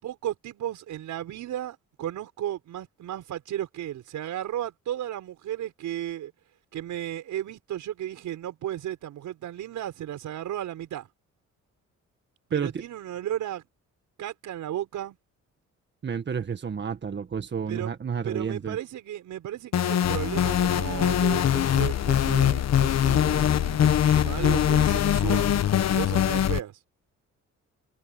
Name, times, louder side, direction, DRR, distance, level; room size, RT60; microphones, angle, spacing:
voice 1, 0.0-6.3 6.7-11.1 12.5-13.6 14.2-15.2 17.7-17.9 18.2-26.8, right 12 dB, 75° right, 5.8 m, -34 dB
voice 2, 16.0-18.8, right 6 dB, 35° right, 1.7 m, -30 dB
sound 1, 19.7-26.6, left 10 dB, 60° left, 1.4 m, -22 dB
cardioid pair, 90°, 30 cm